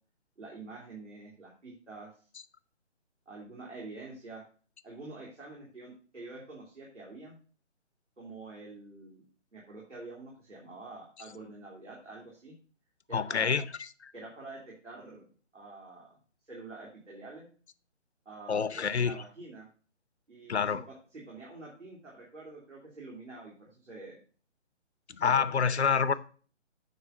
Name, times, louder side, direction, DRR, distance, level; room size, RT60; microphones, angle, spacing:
voice 1, 0.4-2.3 3.2-4.4 4.8-7.4 8.2-9.2 9.5-12.6 13.1-13.6 14.1-16.2 16.5-17.5 18.2-19.7 20.3-24.2 25.1-25.5 25.9-26.0, right 3 dB, 75° right, 3.2 m, -47 dB
voice 2, 13.1-13.6 14.0-14.1 18.5-19.1 20.5-20.8 25.2-26.1, left 6 dB, 60° left, 0.7 m, -27 dB
9.4 x 4.0 x 5.4 m
figure-of-eight pair, 145°, 37 cm